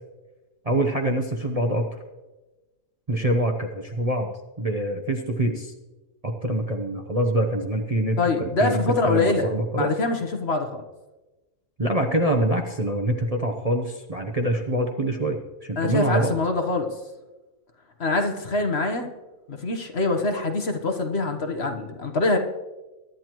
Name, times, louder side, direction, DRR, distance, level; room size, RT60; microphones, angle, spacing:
voice 1, 0.6-2.0 3.1-5.7 6.2-9.9 11.8-16.4, right 1 dB, 30° right, 2 dB, 0.8 m, -25 dB
voice 2, 8.2-9.5 9.7-10.8 15.8-16.9 18.0-19.1 19.5-22.4, left 3 dB, 45° left, 5 dB, 1.2 m, -24 dB
22.5 x 11.0 x 3.1 m, 1.1 s
omnidirectional pair, 1.6 m